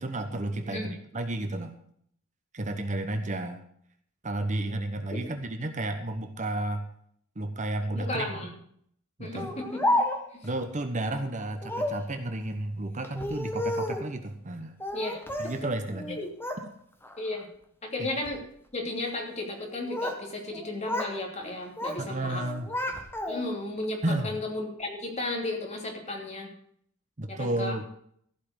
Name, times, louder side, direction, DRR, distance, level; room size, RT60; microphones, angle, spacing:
voice 1, 0.0-1.7 2.5-3.6 4.2-6.8 7.4-8.5 9.2-9.6 10.4-14.7 15.4-16.2 18.0-18.1 22.0-22.7 24.0-24.3 27.2-27.8, right 2 dB, 35° right, 7 dB, 1.0 m, -32 dB
voice 2, 7.9-8.5 9.2-9.8 10.3-10.4 14.9-15.5 16.1-16.3 17.2-17.5 17.8-18.5 18.7-22.5 23.3-26.5 27.3-27.8, left 2 dB, 30° left, 1 dB, 2.9 m, -34 dB
Speech, 9.4-10.5 11.6-12.1 13.0-14.1 14.8-15.6 15.9-16.6 17.0-17.4 18.1-18.4 19.5-20.2 20.5-21.2 21.5-22.0 22.4-23.6, left 1 dB, 10° left, 1.4 m, -31 dB
15.0 x 5.7 x 8.2 m, 0.66 s
head